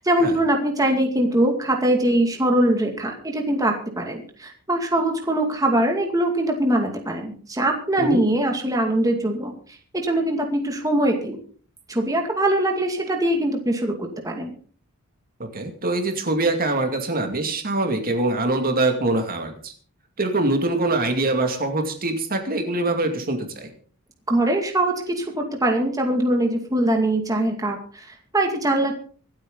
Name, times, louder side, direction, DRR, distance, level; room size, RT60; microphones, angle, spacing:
voice 1, 0.0-11.4 11.9-14.5 24.3-28.9, right 1 dB, 15° right, 2 dB, 2.3 m, -22 dB
voice 2, 15.4-19.7 20.2-23.7, right 2 dB, 40° right, 4 dB, 2.4 m, -24 dB
25.5 x 8.8 x 4.0 m, 0.44 s
head